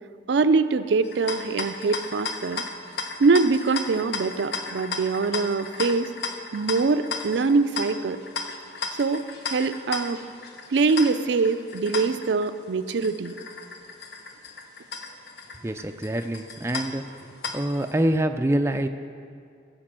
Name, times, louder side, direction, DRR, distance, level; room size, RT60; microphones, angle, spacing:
voice 1, 0.3-2.6 3.2-6.1 6.5-8.2 9.0-10.2 10.7-13.4, right 4 dB, 80° right, 11 dB, 0.4 m, -23 dB
sound 1, 1.0-17.9, left 4 dB, 70° left, 0.8 m, -35 dB
voice 2, 15.6-17.3 17.5-18.9, right 1 dB, 15° right, 7 dB, 0.3 m, -25 dB
14.5 x 5.2 x 7.5 m, 2.3 s
head